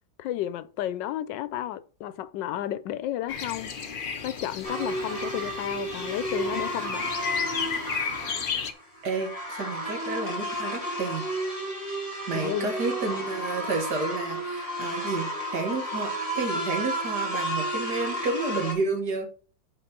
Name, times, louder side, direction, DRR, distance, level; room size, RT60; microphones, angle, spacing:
voice 1, 0.2-3.7 4.2-7.1 12.3-12.7, left 12 dB, 80° left, 1.2 m, -32 dB
sound 1, 3.3-8.7, left 6 dB, 55° left, 0.5 m, -33 dB
sound 2, 4.6-18.7, right 1 dB, 20° left, 2.6 m, -32 dB
voice 2, 9.0-11.2 12.3-19.3, right 3 dB, 65° right, 2.2 m, -31 dB
6.0 x 5.0 x 5.9 m
omnidirectional pair, 2.0 m